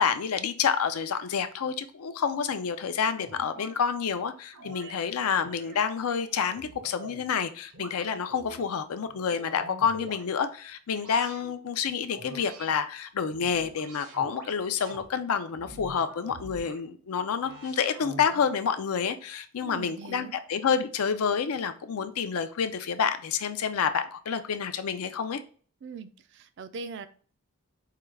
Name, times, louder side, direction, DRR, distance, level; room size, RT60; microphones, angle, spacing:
voice 1, 0.0-25.4, left 6 dB, 80° left, 0.5 m, -28 dB
sound 1, 3.1-3.8 4.5-5.0 5.5-7.3 7.7-8.6 9.1-10.3 10.9-11.5 12.1-12.7 13.2-15.1 15.5-16.8 17.3-18.6, right 1 dB, 85° right, 1.1 m, -46 dB
voice 2, 19.6-20.4 25.8-27.1, right 4 dB, 50° right, 0.3 m, -41 dB
4.7 x 2.3 x 3.2 m
head